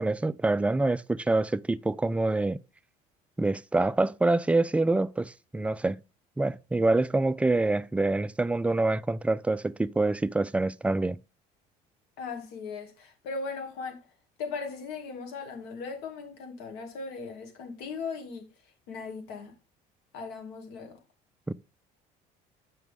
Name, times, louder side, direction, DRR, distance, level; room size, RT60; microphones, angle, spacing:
voice 1, 0.0-2.6 3.4-6.0 6.4-11.2 21.5-21.6, right 2 dB, 10° right, 0.3 m, -26 dB
voice 2, 12.2-14.0 14.4-18.5 18.9-19.5 20.1-21.0, left 4 dB, 85° left, 2.3 m, -38 dB
8.0 x 5.9 x 3.6 m
cardioid pair, 125°, 16 cm